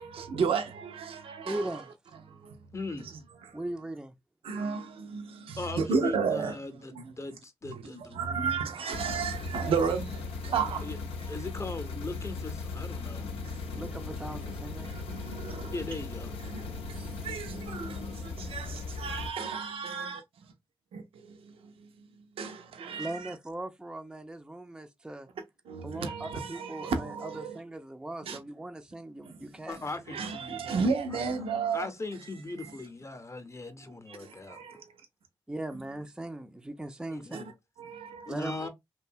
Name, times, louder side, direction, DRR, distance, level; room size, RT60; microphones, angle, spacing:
voice 1, 0.0-1.8 2.2-2.7 3.0-3.1 3.4-3.6 4.4-7.1 7.6-10.9 11.2-11.4 13.4-13.6 14.8-15.8 16.4-20.2 20.9-22.1 22.4-23.3 25.7-27.6 28.2-28.4 29.3-29.4 30.1-31.9 32.6-32.8 34.1-34.9 37.3-37.5 37.8-38.7, right 5 dB, 75° right, 0.5 m, -34 dB
voice 2, 1.4-1.9 3.5-4.1 9.8-9.9 13.7-14.9 23.0-25.3 25.8-29.8 35.5-37.4 38.3-38.5, right 1 dB, 10° right, 0.4 m, -39 dB
voice 3, 2.7-3.1 5.6-8.5 10.8-11.0 11.3-13.3 15.7-16.3 29.7-31.2 31.7-34.6 37.1-37.5 38.3-38.7, left 2 dB, 30° left, 0.7 m, -39 dB
sound 1, 8.9-19.3, left 3 dB, 80° left, 0.5 m, -38 dB
2.6 x 2.2 x 2.6 m
supercardioid pair, 40°, 10 cm